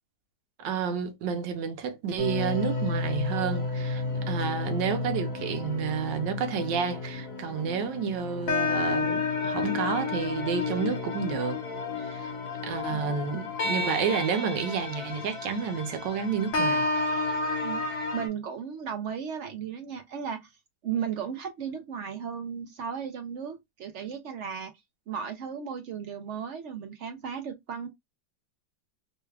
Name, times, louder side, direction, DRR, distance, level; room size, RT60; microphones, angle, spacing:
voice 1, 0.6-11.6 12.0-12.3 12.6-16.9, right 6 dB, 85° right, 1.4 m, -30 dB
sound 1, 2.2-18.3, left 3 dB, 55° left, 1.4 m, -31 dB
voice 2, 17.6-20.5 20.8-24.7 25.1-27.9, right 7 dB, 70° right, 0.7 m, -35 dB
3.4 x 2.3 x 3.2 m
omnidirectional pair, 1.9 m